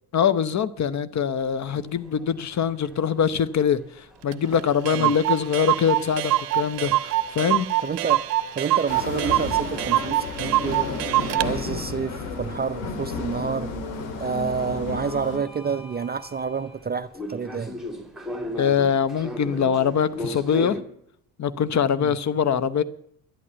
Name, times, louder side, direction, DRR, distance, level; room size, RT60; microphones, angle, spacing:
voice 1, 0.1-7.7 18.6-20.8 21.4-22.8, left 7 dB, 35° left, 0.9 m, -23 dB
sound 1, 1.4-20.8, equal, ahead, 2.6 m, -41 dB
Clock, 4.3-4.4 4.6-4.7 4.9-11.5, right 16 dB, 80° right, 0.6 m, -24 dB
voice 2, 7.8-8.3 8.5-10.9 11.4-13.7 14.2-17.8 22.0-22.1, right 6 dB, 20° right, 0.5 m, -29 dB
sound 2, 8.9-15.4, left 4 dB, 70° left, 2.1 m, -32 dB
11.0 x 11.0 x 6.9 m
hypercardioid pair, 55°, 48 cm